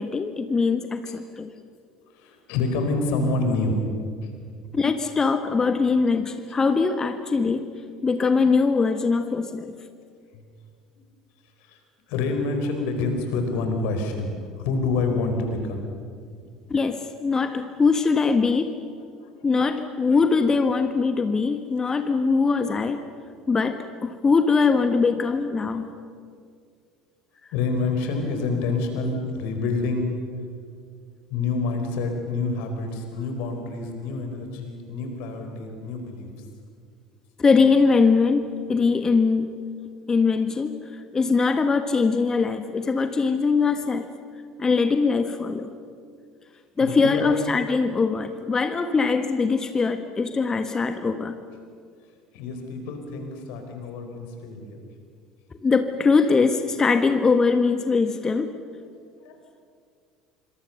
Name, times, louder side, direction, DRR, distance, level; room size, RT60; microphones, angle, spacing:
voice 1, 0.0-1.5 4.7-7.7 8.0-9.7 16.7-18.7 19.4-23.0 23.5-25.9 37.4-39.5 40.1-40.8 41.1-44.1 44.6-45.7 46.8-51.4 55.6-58.5, left 4 dB, 25° left, 8 dB, 1.4 m, -22 dB
voice 2, 2.1-3.8 4.2-4.3 10.3-10.4 11.6-11.8 12.1-14.3 14.6-15.8 19.2-19.3 19.6-19.7 27.5-30.1 31.3-36.3 46.8-47.3 52.3-54.8 59.2-59.4, left 3 dB, 60° left, 5 dB, 4.8 m, -27 dB
27.0 x 26.0 x 6.9 m, 2.2 s
figure-of-eight pair, 65°, 2 cm